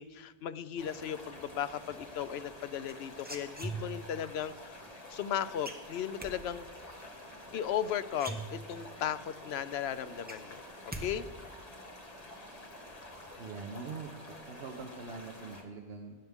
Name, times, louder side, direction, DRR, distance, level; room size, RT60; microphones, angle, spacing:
voice 1, 0.0-4.8 5.1-6.9 7.5-11.3, left 9 dB, 75° left, 14 dB, 0.8 m, -36 dB
sound 1, 0.8-15.6, left 1 dB, 35° left, 1.9 m, -49 dB
sound 2, 2.9-4.2 5.6-6.3 7.7-7.8 8.1-9.0 9.4-9.5 9.8-11.1 11.3-11.8, right 2 dB, 10° right, 1.2 m, -41 dB
voice 2, 13.4-14.1 14.5-16.2, right 4 dB, 75° right, 3 dB, 1.1 m, -43 dB
19.5 x 9.3 x 3.6 m, 1.5 s
omnidirectional pair, 1.1 m